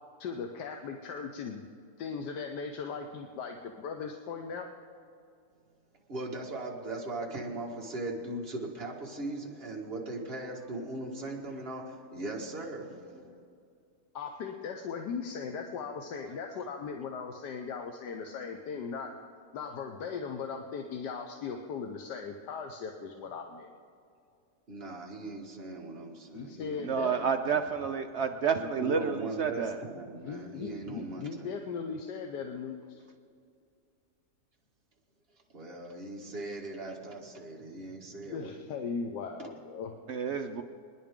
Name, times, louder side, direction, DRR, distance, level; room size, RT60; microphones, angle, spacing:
voice 1, 0.2-1.6 2.0-4.7 14.1-19.1 19.5-23.7 26.3-27.2 30.2-33.0 38.3-40.0, left 5 dB, 85° left, 4 dB, 1.4 m, -38 dB
voice 2, 6.1-13.4 16.5-16.7 24.7-27.6 28.5-31.6 35.5-38.7 39.4-39.5, right 2 dB, 35° right, -1 dB, 2.0 m, -39 dB
voice 3, 26.8-29.8 40.1-40.6, right 6 dB, 65° right, 6 dB, 0.7 m, -30 dB
25.0 x 10.5 x 3.7 m, 2.4 s
omnidirectional pair, 1.8 m